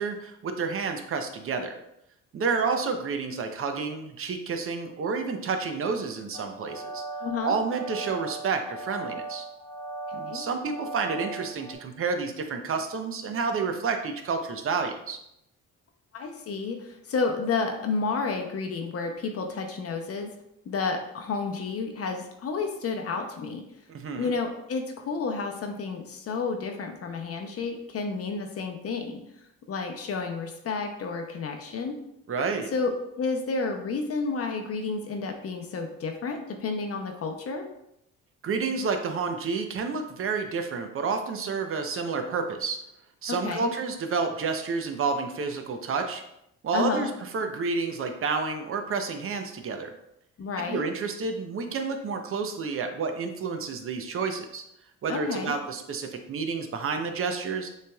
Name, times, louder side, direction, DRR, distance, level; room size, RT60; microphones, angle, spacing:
voice 1, 0.0-1.8 2.3-7.0 7.4-9.4 10.1-15.2 23.9-24.3 32.3-32.7 38.4-42.8 43.2-46.2 46.6-49.9 50.7-54.6 55.0-57.7, right 4 dB, 45° right, 6 dB, 0.7 m, -30 dB
sound 1, 6.3-11.7, right 2 dB, 75° left, 1.0 m, -38 dB
voice 2, 7.2-7.6 10.1-10.5 16.1-20.3 20.7-23.6 24.2-29.2 29.7-32.0 32.7-37.7 43.3-43.7 46.7-47.1 50.4-50.8 55.1-55.5, left 4 dB, 50° left, 4 dB, 0.7 m, -31 dB
6.5 x 3.3 x 2.3 m, 0.80 s
cardioid pair, 90°, 30 cm